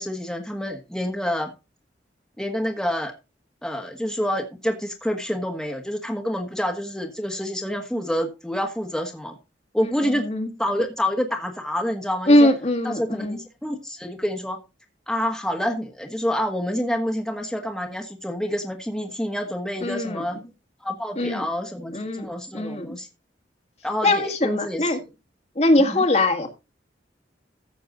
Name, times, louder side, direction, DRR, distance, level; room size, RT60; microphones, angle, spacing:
voice 1, 0.0-1.5 2.4-3.1 3.6-9.3 9.7-10.3 10.6-12.5 12.8-14.6 15.1-20.4 20.8-23.1 23.8-24.9 25.8-26.0, equal, 5° left, 2 dB, 1.5 m, -27 dB
voice 2, 10.1-10.5 12.3-13.4 19.8-20.2 21.2-21.5 21.9-22.3 22.5-23.0 24.0-25.0 25.6-26.5, left 1 dB, 35° left, 5 dB, 1.7 m, -21 dB
14.5 x 6.7 x 3.8 m, 0.27 s
head